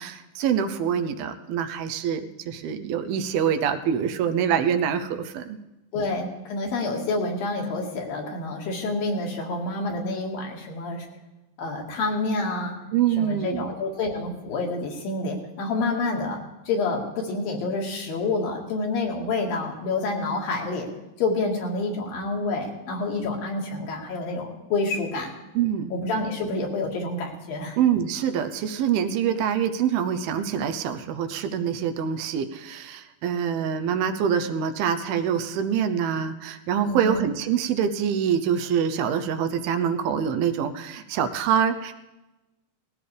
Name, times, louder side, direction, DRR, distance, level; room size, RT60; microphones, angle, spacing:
voice 1, 0.0-5.6 5.9-6.0 12.9-13.8 25.6-25.9 27.8-41.9, right 8 dB, 80° right, 8 dB, 2.6 m, -25 dB
voice 2, 5.9-11.1 11.6-12.8 13.2-16.4 16.7-20.9 21.2-25.3 25.9-27.8 36.9-37.2, left 3 dB, 70° left, 0 dB, 3.6 m, -28 dB
19.5 x 15.0 x 3.4 m, 1.0 s
omnidirectional pair, 4.4 m